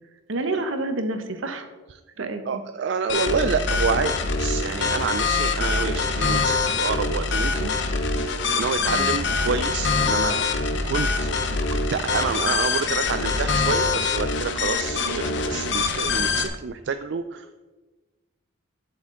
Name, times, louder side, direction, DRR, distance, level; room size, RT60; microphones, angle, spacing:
voice 1, 0.3-1.7 2.2-2.6 8.9-9.2, right 2 dB, 75° right, 8 dB, 0.9 m, -29 dB
voice 2, 2.2-7.7 8.1-10.5 10.9-17.5, right 5 dB, 55° right, 9 dB, 0.3 m, -28 dB
sound 1, 3.1-16.5, left 4 dB, 60° left, 0.7 m, -24 dB
8.9 x 7.0 x 3.8 m, 1.2 s
head